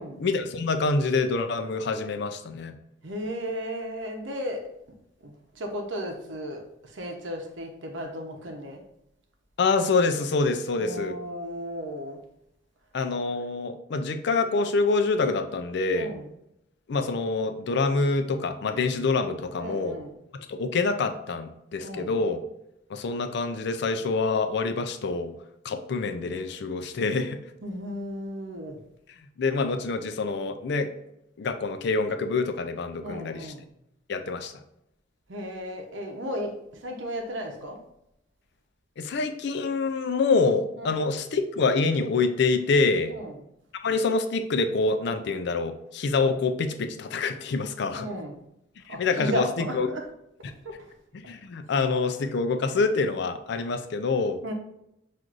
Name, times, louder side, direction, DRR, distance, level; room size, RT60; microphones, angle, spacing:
voice 1, 0.2-2.7 9.6-11.1 12.9-16.1 16.9-20.0 20.5-22.4 22.9-25.3 25.6-27.4 29.4-30.9 31.4-33.5 34.1-34.5 39.0-43.1 43.8-48.1 48.9-49.9 51.1-54.4, left 3 dB, 65° left, 8 dB, 0.4 m, -26 dB
voice 2, 3.0-4.7 5.2-8.8 10.8-12.2 15.9-16.3 19.6-20.1 21.8-22.2 27.6-28.8 33.0-33.7 35.3-37.8 40.8-41.0 43.1-43.4 48.0-48.4 48.9-50.0 50.6-50.9 51.2-51.3 54.4-54.5, equal, 75° right, 3 dB, 0.7 m, -35 dB
6.0 x 2.5 x 2.5 m, 0.80 s
head